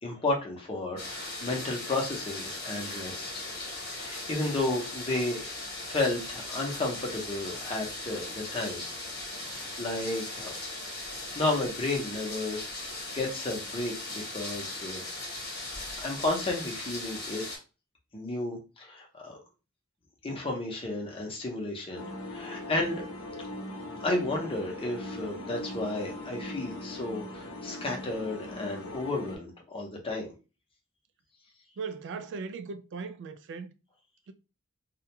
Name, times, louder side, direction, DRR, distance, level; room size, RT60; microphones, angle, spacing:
voice 1, 0.0-3.4 3.9-5.5 5.8-8.8 9.5-10.6 11.3-15.0 15.6-17.4 18.1-19.4 20.2-22.0 22.3-23.1 24.0-30.3, left 2 dB, 25° left, 0.7 m, -32 dB
sound 1, 1.0-17.6, left 2 dB, 50° left, 1.0 m, -38 dB
sound 2, 21.9-29.4, left 1 dB, 75° left, 0.6 m, -40 dB
voice 2, 31.8-33.7 34.3-34.4, right 5 dB, 60° right, 0.3 m, -38 dB
2.3 x 2.1 x 2.8 m
head